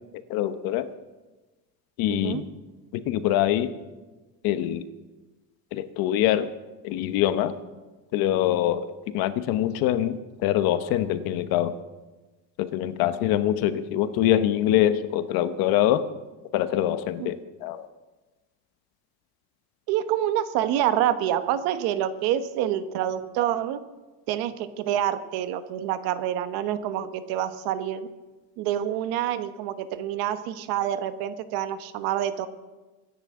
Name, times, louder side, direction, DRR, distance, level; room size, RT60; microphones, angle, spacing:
voice 1, 0.3-0.9 2.0-2.4 3.1-3.7 4.4-4.8 5.7-6.5 6.8-7.5 8.1-8.9 9.1-11.8 12.6-16.1 16.5-17.9, left 12 dB, 70° left, 12 dB, 1.0 m, -24 dB
voice 2, 2.1-2.4 17.2-17.4 19.9-23.8 24.3-28.1 28.6-32.5, right 11 dB, 75° right, 11 dB, 1.2 m, -27 dB
24.0 x 10.5 x 3.7 m, 1.2 s
cardioid pair, 165°, 37 cm